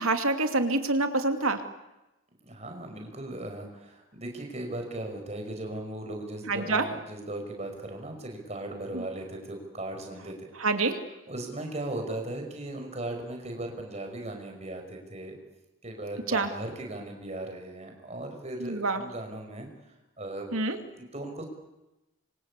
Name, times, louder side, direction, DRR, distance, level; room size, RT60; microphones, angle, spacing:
voice 1, 0.0-1.6 6.5-6.9 8.9-9.0 10.6-11.0 16.3-16.5 18.6-19.0 20.5-20.8, right 3 dB, 80° right, 7 dB, 2.7 m, -26 dB
voice 2, 2.4-10.5 11.3-15.4 15.8-19.7 20.2-20.6 21.0-21.4, right 1 dB, 30° right, 3 dB, 5.5 m, -37 dB
27.0 x 24.5 x 8.4 m, 0.99 s
head